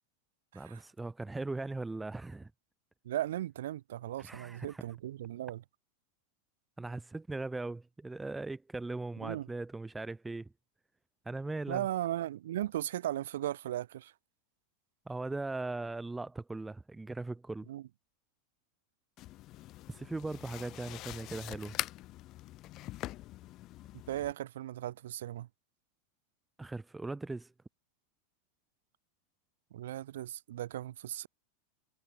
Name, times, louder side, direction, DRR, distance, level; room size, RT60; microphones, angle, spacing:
voice 1, 0.5-2.5 4.2-4.8 6.8-10.5 11.2-11.9 15.0-17.7 19.9-21.8 26.6-27.5, right 3 dB, 10° right, 1.4 m, -39 dB
voice 2, 3.0-5.6 9.2-9.5 11.7-14.1 17.7-17.8 24.1-25.5 29.7-31.3, right 13 dB, 65° right, 2.9 m, -37 dB
sound 1, 19.2-24.3, left 16 dB, 40° left, 0.9 m, -43 dB
figure-of-eight pair, 90°, 0 cm